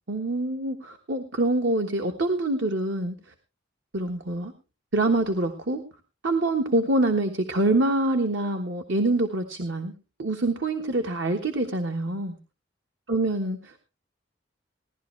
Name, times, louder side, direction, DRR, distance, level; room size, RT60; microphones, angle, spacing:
voice 1, 0.1-3.1 3.9-4.5 4.9-5.8 6.2-9.9 10.2-12.3 13.1-13.9, right 2 dB, 70° right, 5 dB, 1.4 m, -25 dB
18.0 x 11.5 x 3.2 m, 0.29 s
head